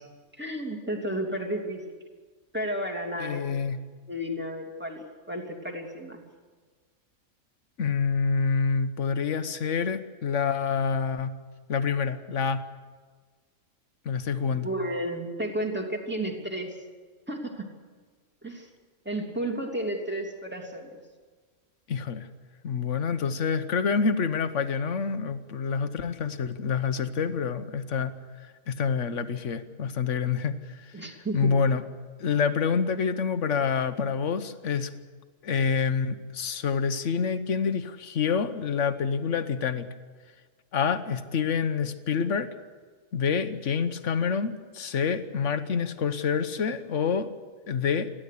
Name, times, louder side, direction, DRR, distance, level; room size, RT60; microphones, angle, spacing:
voice 1, 0.4-1.9 2.5-3.6 4.1-6.2 14.5-16.7 17.3-17.7 18.4-18.7 19.0-21.0 30.9-31.6, right 1 dB, 10° right, 2 dB, 2.8 m, -32 dB
voice 2, 3.2-3.8 7.8-11.3 11.7-12.6 14.0-14.7 21.9-22.3 22.6-28.1 28.7-31.8 32.2-34.9 35.4-39.9 40.7-42.5 43.1-47.3 47.7-48.1, left 6 dB, 70° left, 11 dB, 1.4 m, -27 dB
29.5 x 11.5 x 8.4 m, 1.5 s
omnidirectional pair, 1.3 m